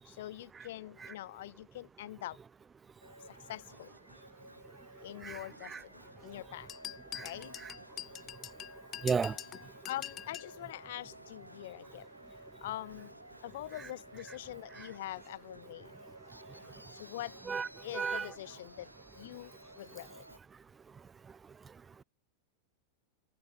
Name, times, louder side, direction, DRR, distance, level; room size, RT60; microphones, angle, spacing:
voice 1, 0.0-2.4 3.3-3.9 5.0-6.7 7.2-7.5 9.9-12.1 12.6-13.1 13.4-15.9 16.9-17.4 17.8-18.9 19.1-19.5 19.8-20.2, left 14 dB, 55° left, 4.6 m, -44 dB
sound 1, 3.0-20.4, right 1 dB, 90° right, 4.3 m, -54 dB
sound 2, 6.7-10.6, left 12 dB, 30° left, 2.1 m, -44 dB
voice 2, 9.0-9.4 17.5-17.7 17.9-18.3, right 6 dB, 15° right, 0.4 m, -32 dB
figure-of-eight pair, 90°, 0 cm